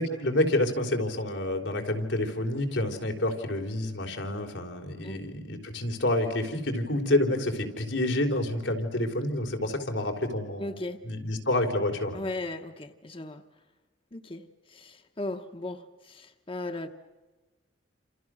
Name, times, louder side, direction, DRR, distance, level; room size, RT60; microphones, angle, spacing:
voice 1, 0.0-10.7 11.0-12.2, left 1 dB, 90° left, 3 dB, 3.8 m, -28 dB
voice 2, 10.6-11.0 12.1-13.4 14.1-14.4 14.7-16.9, left 2 dB, 30° left, 7 dB, 1.0 m, -37 dB
29.5 x 27.5 x 6.3 m, 1.2 s
head